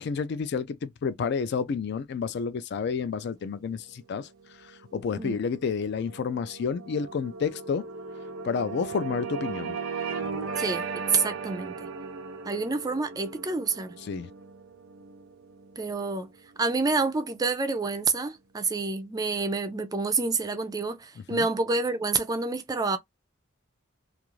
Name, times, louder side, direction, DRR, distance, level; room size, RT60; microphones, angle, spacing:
voice 1, 0.0-4.3 4.6-7.9 8.4-9.7 14.1-14.3 21.3-21.5, left 5 dB, 55° left, 0.3 m, -30 dB
sound 1, 4.4-17.0, right 5 dB, 80° right, 0.5 m, -37 dB
voice 2, 10.6-11.9 12.5-13.9 15.8-16.3 16.6-23.0, right 4 dB, 20° right, 0.4 m, -28 dB
2.4 x 2.4 x 3.0 m
head